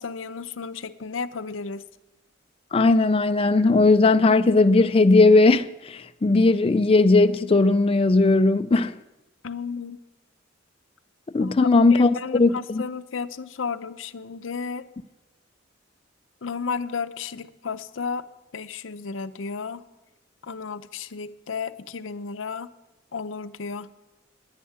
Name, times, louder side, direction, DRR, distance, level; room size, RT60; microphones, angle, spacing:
voice 1, 0.0-1.8 9.4-10.0 11.4-14.9 16.4-18.2 18.5-19.8 20.4-22.7 23.1-23.9, left 5 dB, 85° left, 0.7 m, -33 dB
voice 2, 2.7-8.9 11.3-12.5, left 3 dB, 30° left, 0.4 m, -18 dB
10.5 x 10.0 x 9.5 m
head